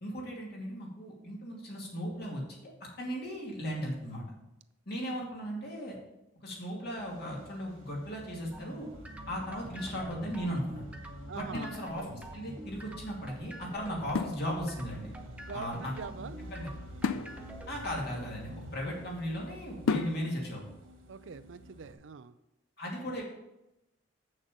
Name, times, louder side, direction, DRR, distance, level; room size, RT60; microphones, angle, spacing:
voice 1, 0.0-2.7 3.0-4.2 4.9-6.0 6.4-8.9 9.3-10.8 11.3-12.0 12.3-15.1 15.5-15.9 16.5-16.7 17.7-20.6 22.8-23.2, equal, 50° left, -2 dB, 2.4 m, -37 dB
sound 1, 7.0-21.9, right 1 dB, 80° right, 2.1 m, -49 dB
sound 2, 8.5-18.1, right 1 dB, 5° right, 0.6 m, -47 dB
voice 2, 11.3-11.7 15.5-16.4 21.1-22.4, right 5 dB, 65° right, 13 dB, 0.4 m, -43 dB
sound 3, 11.5-12.5 14.1-15.0 17.0-19.0 19.9-20.6, left 5 dB, 85° left, 0.5 m, -36 dB
7.6 x 6.4 x 5.0 m, 0.91 s
head